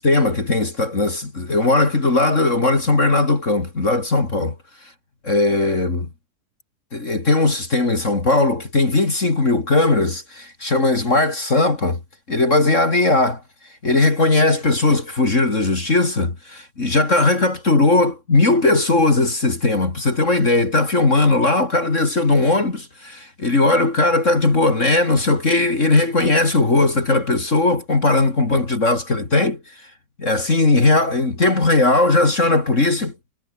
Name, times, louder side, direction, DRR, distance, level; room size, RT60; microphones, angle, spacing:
voice 1, 0.0-4.6 5.2-6.1 6.9-12.0 12.3-13.4 13.8-29.6 30.2-33.1, left 2 dB, 25° left, 2.0 m, -18 dB
omnidirectional pair, 5.2 m